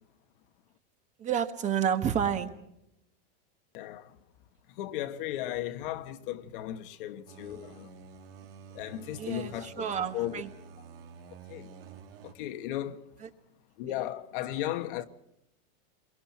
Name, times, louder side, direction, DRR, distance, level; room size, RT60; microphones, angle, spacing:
voice 1, 1.2-2.5 9.2-10.5 13.2-13.3, right 8 dB, 25° right, 1.4 m, -30 dB
voice 2, 3.7-4.2 4.8-7.9 8.7-9.8 10.1-10.4 11.5-11.7 12.2-13.0 13.8-15.0, left 13 dB, 60° left, 1.5 m, -35 dB
sound 1, 7.3-12.3, right 6 dB, 80° right, 3.7 m, -49 dB
27.5 x 23.0 x 4.3 m
supercardioid pair, 155°, 30 cm